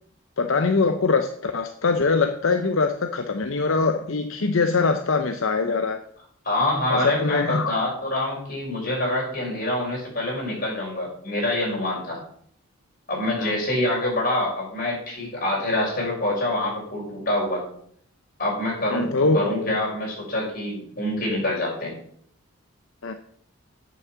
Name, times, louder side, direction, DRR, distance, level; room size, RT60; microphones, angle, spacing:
voice 1, 0.4-6.0 6.9-7.8 13.4-13.6 18.9-19.4 23.0-23.1, left 4 dB, 70° left, 7 dB, 0.7 m, -23 dB
voice 2, 6.4-12.2 13.1-17.6 18.4-22.0, left 1 dB, 40° left, -3 dB, 5.6 m, -26 dB
8.4 x 7.3 x 7.2 m, 0.63 s
head